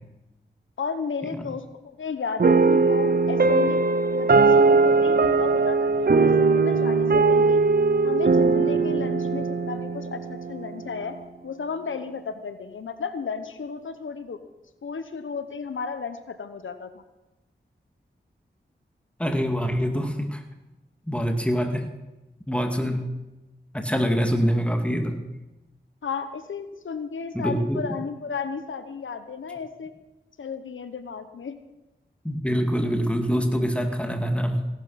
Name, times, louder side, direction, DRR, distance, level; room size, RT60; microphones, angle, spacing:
voice 1, 0.8-3.8 4.1-7.6 8.0-11.1 11.4-14.4 14.8-17.0 26.0-29.9 30.4-31.6, left 5 dB, 85° left, 10 dB, 1.0 m, -33 dB
sound 1, 2.4-11.0, right 4 dB, 55° right, 0.9 m, -20 dB
voice 2, 19.2-20.4 21.1-21.9 22.5-23.1 23.7-25.2 27.3-27.8 32.2-34.7, equal, 5° left, 4 dB, 2.3 m, -25 dB
16.5 x 11.5 x 5.8 m, 1.0 s
cardioid pair, 45°, 20 cm